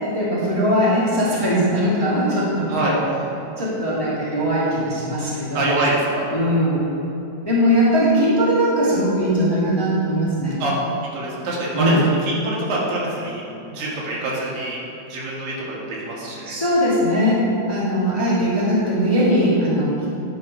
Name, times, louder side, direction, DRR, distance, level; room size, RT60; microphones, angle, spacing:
voice 1, 0.0-3.0 3.6-5.8 6.3-6.9 7.4-10.6 11.7-12.0 16.4-17.4 17.7-19.9, equal, 10° left, -9 dB, 1.2 m, -20 dB
voice 2, 5.5-6.2 10.6-10.7 11.0-13.4 13.7-14.8 15.1-16.6, right 2 dB, 85° right, -5 dB, 3.3 m, -25 dB
10.5 x 4.8 x 5.3 m, 2.8 s
omnidirectional pair, 3.9 m